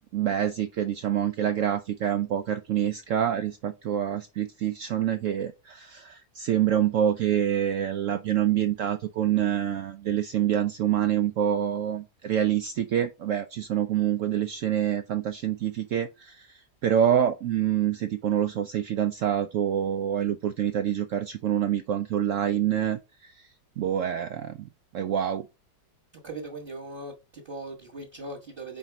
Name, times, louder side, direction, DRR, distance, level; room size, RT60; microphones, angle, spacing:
voice 1, 0.1-25.5, right 10 dB, 85° right, 0.6 m, -26 dB
voice 2, 26.1-28.8, right 2 dB, 35° right, 1.4 m, -39 dB
4.9 x 4.0 x 5.8 m
omnidirectional pair, 1.9 m